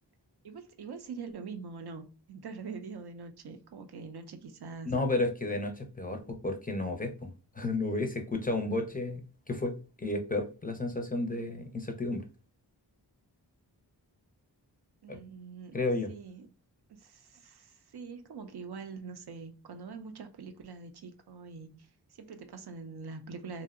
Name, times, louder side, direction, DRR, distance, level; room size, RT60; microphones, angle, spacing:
voice 1, 0.4-4.9 6.1-6.3 15.0-15.8 16.1-16.5 16.9-23.6, right 5 dB, 65° right, 0.5 m, -44 dB
voice 2, 4.9-12.2 15.1-15.2 15.7-16.1, left 2 dB, 20° left, 0.5 m, -32 dB
2.7 x 2.0 x 2.4 m
cardioid pair, 45°, 42 cm